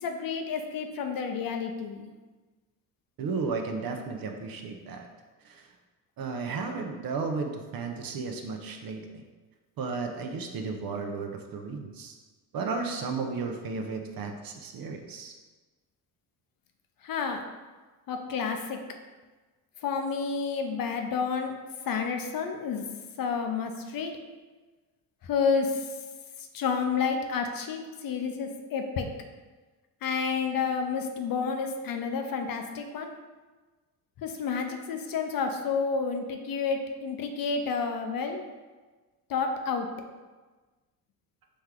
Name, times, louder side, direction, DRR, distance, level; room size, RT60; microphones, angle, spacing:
voice 1, 0.0-2.1 17.0-17.4 18.1-18.8 19.8-21.5 21.9-22.8 23.2-24.1 25.2-25.9 26.4-29.1 30.0-33.1 34.2-38.4 39.3-39.9, left 5 dB, 45° left, 5 dB, 0.7 m, -30 dB
voice 2, 3.2-5.1 5.4-5.7 6.2-9.2 9.8-12.2 12.5-15.3, right 4 dB, 50° right, 4 dB, 0.7 m, -34 dB
4.3 x 3.4 x 3.7 m, 1.3 s
supercardioid pair, 70°, 47 cm